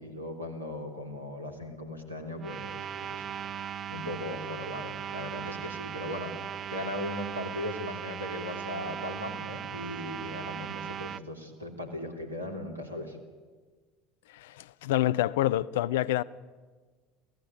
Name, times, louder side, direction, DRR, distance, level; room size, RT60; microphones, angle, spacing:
voice 1, 0.0-13.2, left 1 dB, 85° right, 3.2 m, -38 dB
sound 1, 2.4-11.2, right 9 dB, 35° right, 0.6 m, -38 dB
voice 2, 14.3-16.2, left 14 dB, 65° left, 0.6 m, -27 dB
28.0 x 16.5 x 8.7 m
figure-of-eight pair, 70°, 0 cm